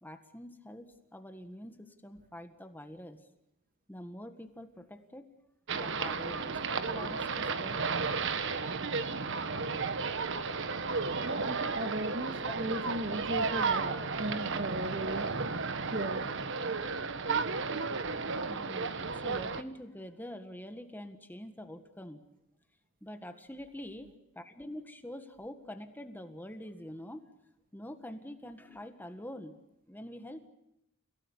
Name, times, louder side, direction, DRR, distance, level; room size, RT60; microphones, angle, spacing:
voice 1, 0.0-3.3 3.9-5.3 5.7-7.8 12.4-12.6 12.9-13.0 13.9-14.4 16.0-16.1 18.5-22.2 23.0-24.1 24.3-27.3 27.7-29.6 29.9-30.5, left 1 dB, 10° left, 8 dB, 1.7 m, -45 dB
sound 1, 5.7-19.6, right 4 dB, 60° right, 1.5 m, -33 dB
voice 2, 11.2-15.3 15.9-16.3, right 1 dB, 40° right, 8 dB, 2.3 m, -37 dB
30.0 x 17.5 x 9.8 m, 0.84 s
head